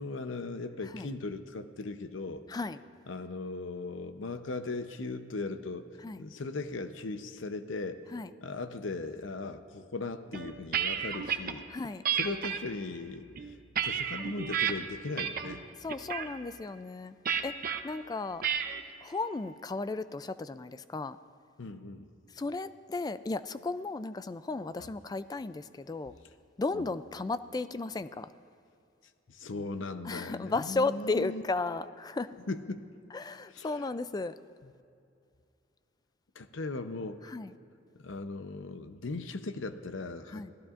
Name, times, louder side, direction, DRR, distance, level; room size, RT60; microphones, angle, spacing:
voice 1, 0.0-2.4 3.1-5.9 6.2-8.0 8.4-11.6 12.1-13.6 13.8-15.6 21.6-22.1 24.8-24.9 26.7-26.9 29.3-31.4 32.4-32.8 33.5-33.9 34.6-34.7 36.4-37.3 38.0-40.5, left 3 dB, 75° left, 9 dB, 0.7 m, -38 dB
sound 1, 10.3-11.5 12.0-12.6 13.2-14.7 15.2-15.6 15.9-16.3 17.3-17.8 18.4-18.8, right 8 dB, 45° right, 0.7 m, -31 dB
voice 2, 11.7-12.0 15.8-17.1 17.4-17.5 17.8-18.4 19.0-21.2 22.4-26.1 26.6-28.3 30.1-32.3 33.1-34.3 37.3-37.5 40.3-40.5, left 3 dB, 20° left, 14 dB, 0.3 m, -34 dB
28.0 x 17.0 x 2.5 m, 2.5 s
head